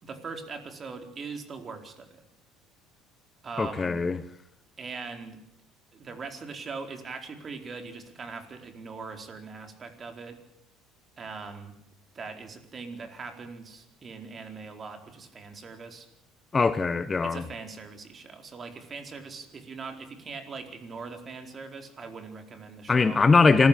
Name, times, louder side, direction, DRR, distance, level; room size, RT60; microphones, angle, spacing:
voice 1, 0.0-2.2 3.4-4.0 4.8-5.4 5.9-10.4 11.2-11.8 12.1-16.1 17.2-23.2, right 4 dB, 35° right, 4.5 m, -41 dB
voice 2, 3.6-4.2 16.5-17.4 22.9-23.7, left 4 dB, 25° left, 1.1 m, -21 dB
26.0 x 15.0 x 8.6 m
supercardioid pair, 90°, 0 cm